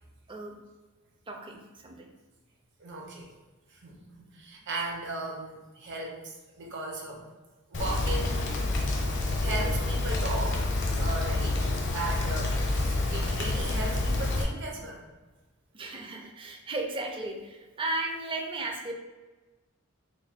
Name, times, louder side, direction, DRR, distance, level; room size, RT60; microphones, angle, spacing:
voice 1, 1.3-2.1 15.7-18.9, right 2 dB, 25° right, 1 dB, 0.5 m, -35 dB
voice 2, 2.8-3.3 3.7-7.2 7.7-8.4 9.4-10.7 11.0-11.6 11.9-15.0, right 2 dB, 60° right, -1 dB, 0.8 m, -36 dB
Rain, 7.7-14.4, left 2 dB, 60° left, 0.7 m, -28 dB
3.2 x 2.2 x 4.1 m, 1.2 s
head